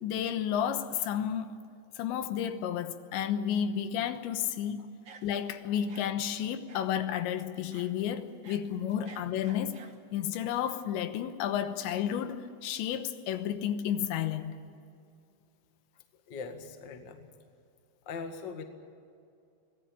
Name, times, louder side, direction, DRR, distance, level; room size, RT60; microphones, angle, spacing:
voice 1, 0.0-1.5 2.0-4.9 5.2-9.8 10.1-14.6, left 9 dB, 85° left, 9 dB, 3.4 m, -32 dB
sound 1, 5.0-5.5 5.9-6.1 6.7-7.0 7.7-7.9 8.3-10.0, right 5 dB, 60° right, 1.3 m, -52 dB
voice 2, 16.3-17.3 18.0-18.6, left 5 dB, 55° left, 5 dB, 1.2 m, -40 dB
24.5 x 19.0 x 8.7 m, 2.4 s
omnidirectional pair, 5.1 m